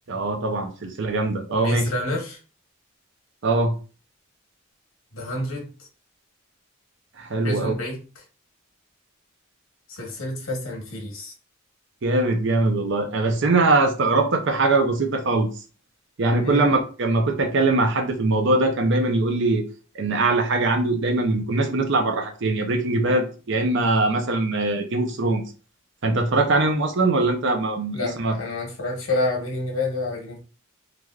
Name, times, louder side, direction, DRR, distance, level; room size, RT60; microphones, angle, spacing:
voice 1, 0.1-1.9 3.4-3.7 7.2-7.7 12.0-15.5 16.2-19.6 19.9-25.5 26.0-28.4, right 2 dB, 60° right, 6 dB, 0.6 m, -22 dB
voice 2, 1.5-2.4 5.1-5.9 7.4-8.2 9.9-11.3 16.4-16.7 27.9-30.4, left 2 dB, 80° left, -1 dB, 1.1 m, -29 dB
3.2 x 2.5 x 2.3 m, 0.36 s
head